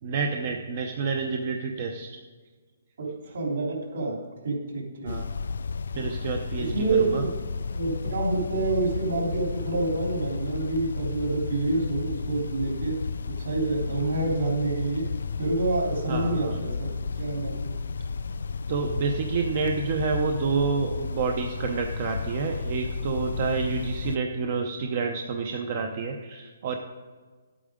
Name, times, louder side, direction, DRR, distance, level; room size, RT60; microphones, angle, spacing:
voice 1, 0.0-2.2 5.0-5.3 5.9-7.2 16.1-16.6 18.7-26.8, right 5 dB, 35° right, 4 dB, 0.7 m, -29 dB
voice 2, 3.0-5.2 6.6-7.3 7.7-13.0 13.3-15.1 15.4-17.7, right 3 dB, 60° right, -1 dB, 3.2 m, -28 dB
sound 1, 5.1-24.2, left 5 dB, 75° left, 0.4 m, -33 dB
11.0 x 8.7 x 5.1 m, 1.4 s
hypercardioid pair, 175°, 0 cm